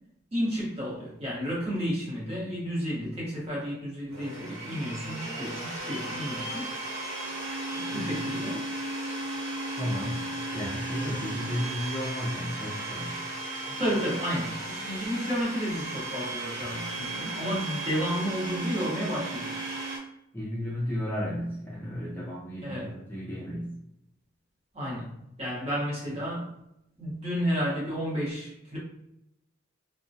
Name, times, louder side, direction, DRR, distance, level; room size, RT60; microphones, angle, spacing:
voice 1, 0.3-6.7 7.7-8.6 11.0-11.5 13.8-19.6 22.6-22.9 24.7-25.1 25.4-26.5 27.0-28.8, equal, 30° right, -6 dB, 1.0 m, -32 dB
Domestic sounds home sounds, 4.1-20.0, right 2 dB, 90° right, 0.7 m, -35 dB
voice 2, 9.8-10.2 10.5-13.1 20.3-23.7, equal, 10° left, -6 dB, 0.5 m, -33 dB
2.2 x 2.1 x 2.6 m, 0.81 s
head